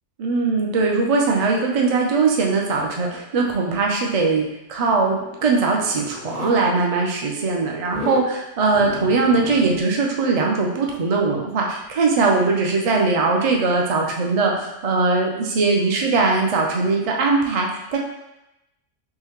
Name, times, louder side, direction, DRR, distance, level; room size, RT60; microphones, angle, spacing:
voice 1, 0.2-18.0, right 3 dB, 45° right, 0 dB, 0.5 m, -20 dB
Zipper (clothing), 4.9-6.6 7.8-8.3 8.7-9.8, left 3 dB, 60° left, 0.5 m, -33 dB
5.5 x 2.1 x 3.0 m, 0.91 s
omnidirectional pair, 1.2 m